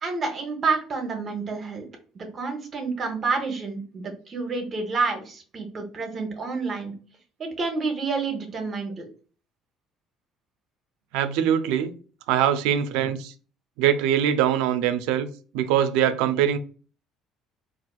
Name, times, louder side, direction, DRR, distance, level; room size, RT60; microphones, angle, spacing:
voice 1, 0.0-1.9 2.1-6.9 7.4-9.1, right 4 dB, 40° right, 0.7 m, -29 dB
voice 2, 11.1-11.9 12.3-13.3 13.8-15.3 15.5-16.6, right 9 dB, 90° right, 0.3 m, -22 dB
4.0 x 2.4 x 2.3 m
cardioid pair, 115°, 0 cm